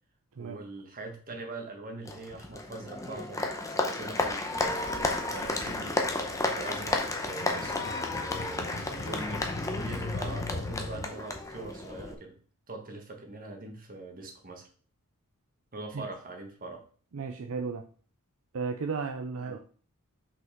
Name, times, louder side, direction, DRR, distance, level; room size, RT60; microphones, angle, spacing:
voice 1, 0.4-8.7 9.0-9.5 9.8-12.4 12.7-14.7 15.7-16.8 19.4-19.6, right 2 dB, 40° right, 2 dB, 1.6 m, -42 dB
Applause, 2.0-12.1, left 2 dB, 15° left, 0.8 m, -32 dB
sound 1, 5.1-11.1, left 3 dB, 50° left, 0.7 m, -40 dB
voice 2, 17.1-17.8 18.5-19.6, right 5 dB, 65° right, 6 dB, 0.5 m, -34 dB
6.1 x 5.3 x 3.6 m, 0.42 s
head